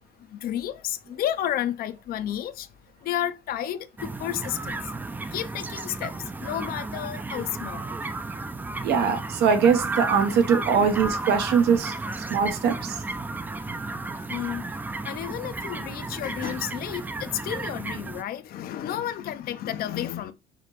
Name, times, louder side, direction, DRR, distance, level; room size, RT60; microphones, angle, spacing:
voice 1, 0.3-2.7 3.0-4.8 5.3-7.9 10.7-11.0 14.1-14.7 15.0-20.3, left 11 dB, 60° left, 0.5 m, -32 dB
sound 1, 4.0-18.2, right 2 dB, 10° right, 0.4 m, -33 dB
voice 2, 8.8-11.9 12.3-13.0, right 6 dB, 75° right, 0.9 m, -22 dB
5.0 x 3.0 x 3.0 m
cardioid pair, 110°, 17 cm